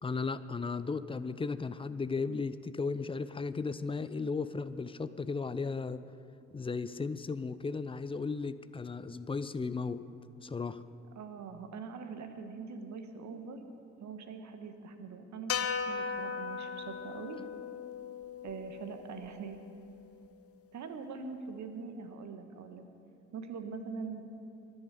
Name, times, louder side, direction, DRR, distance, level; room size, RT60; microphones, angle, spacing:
voice 1, 0.0-6.0 6.5-10.1 10.4-10.8, left 4 dB, 15° left, 13 dB, 0.5 m, -35 dB
voice 2, 11.1-13.6 14.0-17.4 18.4-19.6 20.7-22.8 23.3-24.2, right 5 dB, 50° right, 7 dB, 1.6 m, -43 dB
sound 1, 15.5-19.8, left 6 dB, 40° left, 1.0 m, -38 dB
23.0 x 10.5 x 5.1 m, 2.7 s
figure-of-eight pair, 45°, 37 cm